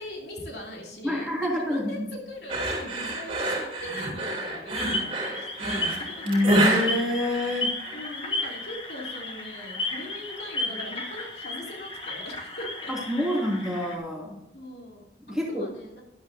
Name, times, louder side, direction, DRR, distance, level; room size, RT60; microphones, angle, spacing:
voice 1, 0.0-6.3 7.9-12.9 13.2-13.3 14.5-16.0, left 1 dB, 65° left, -1 dB, 2.9 m, -41 dB
voice 2, 1.0-1.9 6.2-7.7 12.9-14.4 15.3-15.7, left 1 dB, 5° right, -3 dB, 2.6 m, -27 dB
sound 1, 2.5-8.0, right 1 dB, 30° right, 3.0 m, -28 dB
sound 2, 4.8-14.0, left 2 dB, 30° left, 1.6 m, -34 dB
13.0 x 11.0 x 2.7 m, 0.87 s
head